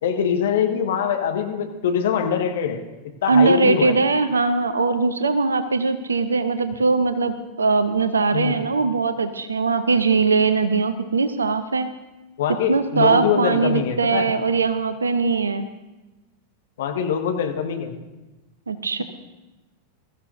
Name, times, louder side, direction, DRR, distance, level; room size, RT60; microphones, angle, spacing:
voice 1, 0.0-2.8 3.2-3.9 8.3-8.6 12.4-14.3 16.8-18.0, left 7 dB, 60° left, 5 dB, 1.3 m, -23 dB
voice 2, 3.3-11.9 12.5-15.6 18.7-19.0, right 4 dB, 75° right, 11 dB, 0.7 m, -21 dB
21.5 x 14.0 x 2.6 m, 1.1 s
figure-of-eight pair, 90°, 0 cm